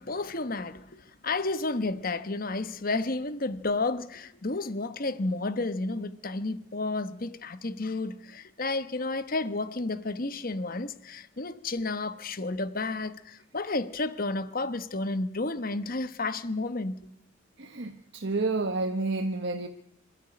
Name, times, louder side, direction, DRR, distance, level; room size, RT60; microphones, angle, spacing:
voice 1, 0.0-17.1, left 3 dB, 45° left, 1.1 m, -31 dB
voice 2, 17.6-19.7, right 3 dB, 55° right, 1.1 m, -30 dB
25.5 x 13.0 x 9.7 m
head